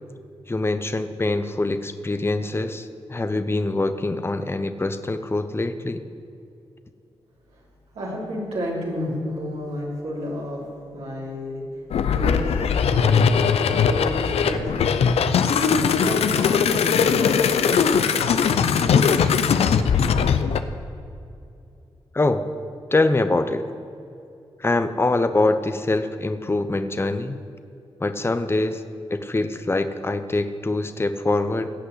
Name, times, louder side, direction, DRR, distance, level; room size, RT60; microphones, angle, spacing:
voice 1, 0.5-6.0 22.1-22.4 22.9-23.6 24.6-27.4 28.0-28.8 29.1-31.7, left 2 dB, 25° left, 10 dB, 0.8 m, -24 dB
voice 2, 7.9-10.6 10.9-11.6 12.1-13.3 13.8-15.0 15.5-19.8, equal, 85° right, -6 dB, 3.7 m, -31 dB
sound 1, 11.9-20.6, left 6 dB, 80° left, 0.6 m, -20 dB
16.0 x 5.8 x 8.1 m, 2.6 s
supercardioid pair, 45°, 10 cm